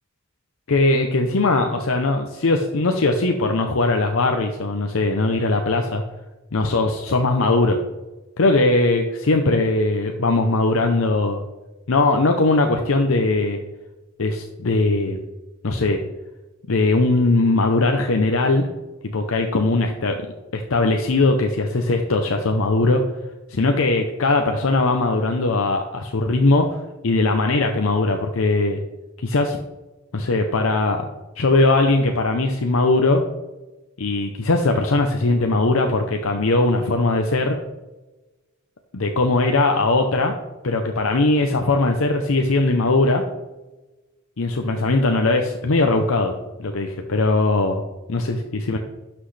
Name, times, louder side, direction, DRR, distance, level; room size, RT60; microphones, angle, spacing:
voice 1, 0.7-6.0 6.5-7.8 8.4-11.4 11.9-13.6 14.2-15.2 15.6-16.0 16.7-18.7 19.0-20.2 20.5-23.0 23.5-26.8 27.0-28.8 29.2-29.6 30.1-31.1 31.4-33.2 34.0-37.6 38.9-40.3 40.6-43.2 44.4-46.3 46.6-47.8 48.1-48.8, left 2 dB, 80° left, 4 dB, 0.7 m, -20 dB
11.5 x 6.0 x 3.3 m, 1.1 s
head